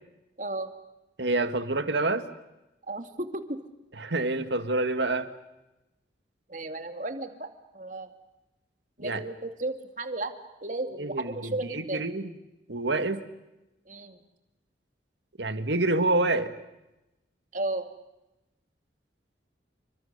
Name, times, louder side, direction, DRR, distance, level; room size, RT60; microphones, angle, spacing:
voice 1, 0.4-0.7 2.9-3.6 6.5-7.5 7.7-8.1 9.0-10.3 10.6-12.0 13.9-14.2 17.5-17.9, right 2 dB, 45° right, 7 dB, 2.4 m, -34 dB
voice 2, 1.2-2.3 4.0-5.3 9.0-9.2 11.0-12.2 12.7-13.2 15.4-16.5, right 2 dB, 75° right, 9 dB, 2.0 m, -27 dB
28.5 x 25.0 x 6.8 m, 0.97 s
head